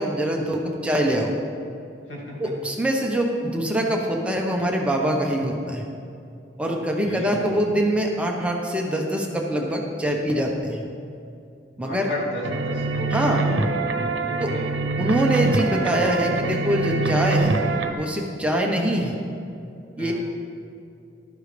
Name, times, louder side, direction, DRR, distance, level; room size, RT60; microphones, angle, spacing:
voice 1, 0.0-1.3 2.4-5.9 6.6-10.8 11.8-12.1 13.1-13.4 14.4-14.5 15.0-17.6 18.0-19.1 20.0-20.1, equal, 5° right, 0 dB, 1.0 m, -24 dB
voice 2, 2.1-2.5 6.6-6.7 7.0-7.7 11.8-13.7 14.5-14.8 20.0-20.1, left 1 dB, 80° left, -5 dB, 3.0 m, -34 dB
sound 1, 12.4-17.9, right 3 dB, 90° right, 0.8 m, -24 dB
14.5 x 12.0 x 3.4 m, 2.5 s
head